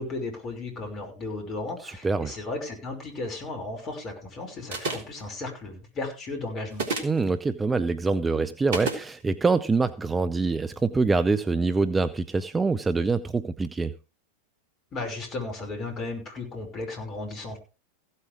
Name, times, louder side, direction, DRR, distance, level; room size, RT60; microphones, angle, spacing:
voice 1, 0.0-6.9 14.9-17.6, left 2 dB, 30° left, 5.5 m, -35 dB
voice 2, 1.8-2.3 7.0-13.9, right 4 dB, 15° right, 0.7 m, -25 dB
sound 1, 4.7-5.2 6.7-7.2 8.7-9.0, right 3 dB, 55° right, 3.5 m, -29 dB
16.0 x 8.4 x 4.9 m
figure-of-eight pair, 90°, 0 cm